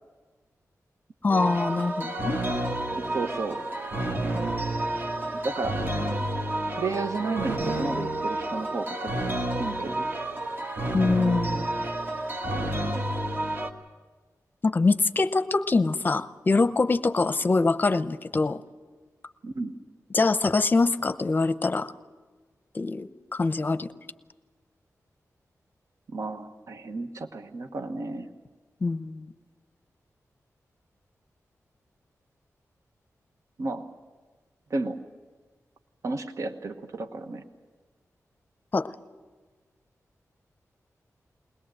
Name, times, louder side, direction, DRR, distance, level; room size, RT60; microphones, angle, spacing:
voice 1, 1.2-2.4 10.9-11.7 14.6-18.6 20.1-21.9 22.7-23.9 28.8-29.3 38.7-38.9, left 3 dB, 35° left, 13 dB, 0.7 m, -24 dB
sound 1, 1.3-13.7, right 1 dB, 35° right, 1.5 m, -30 dB
voice 2, 2.9-3.6 5.4-5.8 6.8-9.3 9.6-10.1 19.4-19.7 26.1-28.3 33.6-33.8 34.7-35.0 36.0-37.4, right 3 dB, 65° right, 7 dB, 1.2 m, -32 dB
21.5 x 20.5 x 7.7 m, 1.4 s
wide cardioid pair, 170°, 6 cm